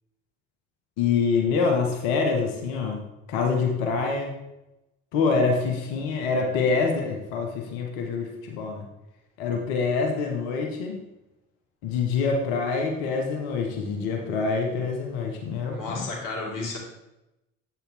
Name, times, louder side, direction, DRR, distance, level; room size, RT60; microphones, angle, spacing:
voice 1, 1.0-3.0 3.3-4.3 5.1-8.8 9.4-11.0 11.8-16.1, left 4 dB, 70° left, 1 dB, 1.1 m, -25 dB
voice 2, 15.7-16.8, left 3 dB, 55° left, 0 dB, 2.2 m, -32 dB
8.0 x 4.2 x 4.2 m, 0.92 s
hypercardioid pair, 55°, 38 cm